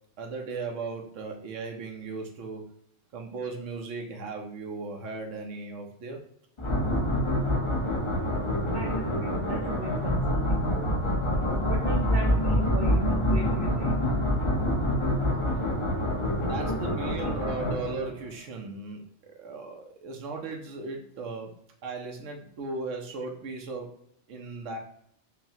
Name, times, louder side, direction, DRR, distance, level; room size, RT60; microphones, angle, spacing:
voice 1, 0.2-2.6 3.1-6.2 16.4-21.5 21.8-23.9 24.3-24.8, right 3 dB, 85° right, 2 dB, 1.0 m, -37 dB
sound 1, 6.6-18.3, equal, 30° left, 0.7 m, -26 dB
voice 2, 8.7-10.9 11.6-14.0, right 2 dB, 60° right, -1 dB, 0.7 m, -36 dB
5.5 x 2.1 x 2.8 m, 0.70 s
omnidirectional pair, 1.3 m